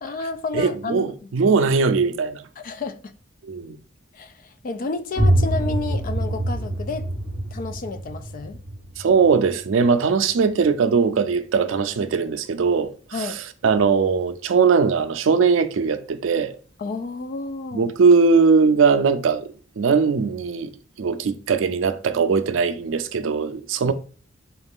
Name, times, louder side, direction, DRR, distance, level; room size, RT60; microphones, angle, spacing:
voice 1, 0.0-1.3 2.6-3.0 4.1-7.1 7.5-8.6 13.1-13.4 16.8-17.9 23.8-23.9, left 3 dB, 45° left, 0.4 m, -31 dB
voice 2, 0.5-2.4 3.4-3.8 9.0-12.9 13.2-13.3 13.6-16.6 17.7-19.5 19.8-20.7 21.0-23.9, right 5 dB, 85° right, 0.4 m, -20 dB
sound 1, 5.1-10.7, right 1 dB, 80° left, 1.4 m, -25 dB
4.0 x 2.4 x 3.5 m
head